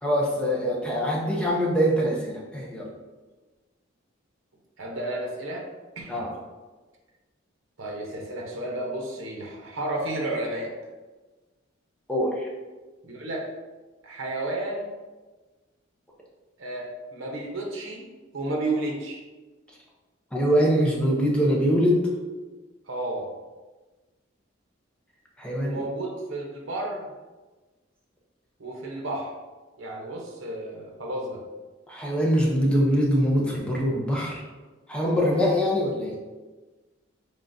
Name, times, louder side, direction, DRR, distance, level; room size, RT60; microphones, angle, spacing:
voice 1, 0.0-2.9 6.1-6.3 12.1-12.5 20.3-22.0 25.4-25.8 31.9-34.4 34.9-36.2, equal, 5° left, -3 dB, 0.6 m, -23 dB
voice 2, 4.8-5.7 6.0-6.2 7.8-10.7 13.0-13.5 14.0-14.9 16.6-18.1 18.3-19.2 22.9-23.3 25.6-27.1 28.6-29.3 29.8-31.4, right 2 dB, 80° right, -1 dB, 0.8 m, -32 dB
3.7 x 3.5 x 2.6 m, 1.2 s
head